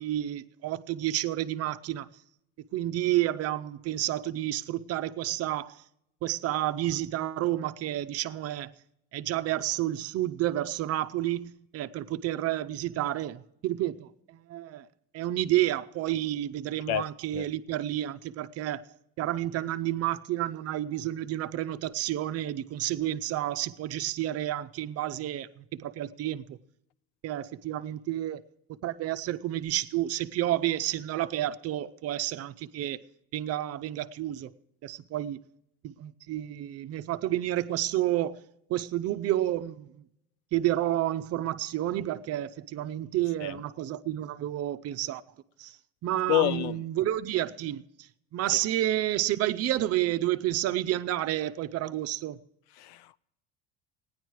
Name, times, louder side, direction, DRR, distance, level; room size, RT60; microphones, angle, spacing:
voice 1, 0.0-2.1 2.7-5.8 6.2-8.7 9.1-14.9 15.1-18.8 19.2-26.6 27.2-28.4 28.8-33.0 33.3-34.5 34.8-35.4 35.8-40.0 40.5-45.2 45.6-45.8 46.0-52.4, right 13 dB, 40° right, 0.5 m, -30 dB
voice 2, 46.3-46.8 52.8-53.2, left 14 dB, 80° left, 0.6 m, -28 dB
16.0 x 10.0 x 4.6 m
cardioid pair, 150°, 38 cm